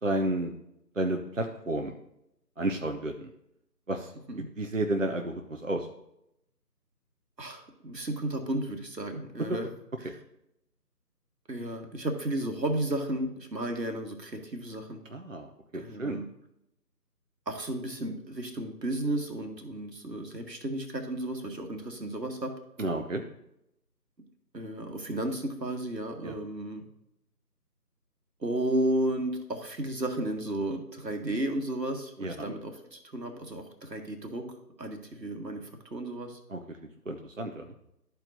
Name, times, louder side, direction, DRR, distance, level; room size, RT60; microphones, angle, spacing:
voice 1, 0.0-0.5 1.0-1.9 2.6-3.3 3.9-4.1 4.6-5.9 10.0-10.1 15.1-16.2 22.8-23.2 26.2-26.3 32.2-32.5 36.5-36.8 37.1-37.7, right 1 dB, 50° right, 4 dB, 0.6 m, -31 dB
voice 2, 7.4-9.7 10.0-10.2 11.5-15.0 15.7-16.3 17.4-22.5 24.5-26.8 28.4-36.4, right 1 dB, 80° right, 5 dB, 1.6 m, -33 dB
12.5 x 4.6 x 2.7 m, 0.81 s
figure-of-eight pair, 165°, 50 cm